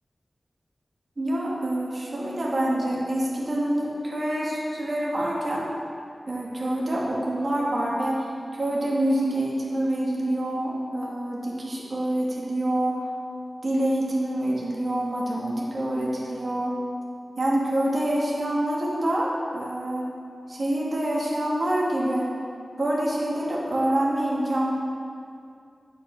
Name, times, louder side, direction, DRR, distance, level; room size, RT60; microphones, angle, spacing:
voice 1, 1.2-5.7 6.3-8.3 8.5-13.0 13.6-16.8 17.4-20.1 20.5-22.3 22.8-24.7, right 1 dB, 55° right, -4 dB, 2.4 m, -26 dB
9.1 x 5.8 x 7.2 m, 2.4 s
wide cardioid pair, 60°, 0 cm